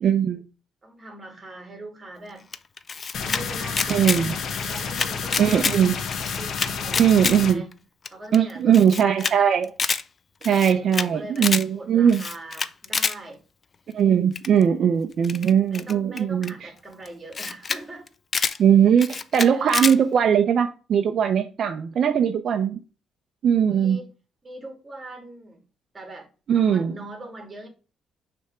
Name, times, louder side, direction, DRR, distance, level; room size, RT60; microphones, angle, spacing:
voice 1, 0.0-0.4 3.9-4.4 5.4-5.9 7.0-7.6 8.3-9.7 10.4-12.2 13.9-16.7 18.6-22.8 23.4-24.0 26.5-26.9, right 8 dB, 55° right, 0.6 m, -20 dB
voice 2, 0.8-2.5 3.2-4.2 4.6-5.9 6.4-7.2 7.4-7.7 8.1-9.1 10.7-13.4 15.7-18.1 23.7-24.1 24.4-25.6 25.9-27.7, right 1 dB, 20° right, 2.1 m, -41 dB
Camera, 2.5-3.4 3.7-4.2 4.5-5.8 6.1-7.4 7.7-7.8 8.1-8.2 8.3-8.4 8.7-9.3 9.6-10.0 10.4-11.1 11.4-11.6 12.1-13.2 14.4-14.6 15.2-16.5 17.1-17.2 17.3-17.8 18.1-18.6 19.0-20.0, left 5 dB, 35° left, 0.4 m, -27 dB
sound 1, 3.1-7.5, left 6 dB, 60° left, 0.8 m, -30 dB
6.4 x 3.5 x 4.6 m
cardioid pair, 125°, 0 cm